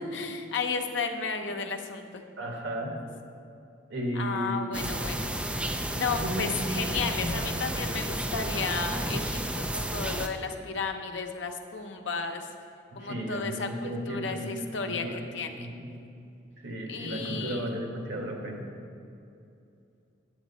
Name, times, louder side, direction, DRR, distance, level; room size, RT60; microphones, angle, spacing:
voice 1, 0.1-2.2 4.2-5.3 6.0-9.4 9.7-12.5 13.0-15.7 16.9-17.7, left 5 dB, 80° left, 5 dB, 0.7 m, -33 dB
voice 2, 2.4-3.0 3.9-4.8 5.9-7.3 12.9-15.2 15.5-15.9 16.6-18.7, right 1 dB, 90° right, 1 dB, 1.6 m, -34 dB
sound 1, 4.7-10.3, right 1 dB, 5° right, 0.3 m, -32 dB
8.7 x 8.3 x 4.2 m, 2.6 s
head